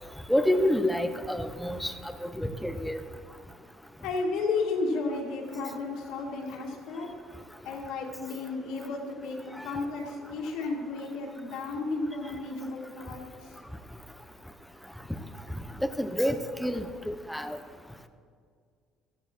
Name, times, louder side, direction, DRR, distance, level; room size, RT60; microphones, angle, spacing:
voice 1, 0.3-1.9 2.2-3.0 9.6-9.7 15.8-17.6, left 1 dB, ahead, 8 dB, 1.1 m, -28 dB
voice 2, 4.0-7.1 7.6-13.5, left 3 dB, 80° left, -6 dB, 2.6 m, -33 dB
17.0 x 12.5 x 4.6 m, 2.1 s
cardioid pair, 115°, 0 cm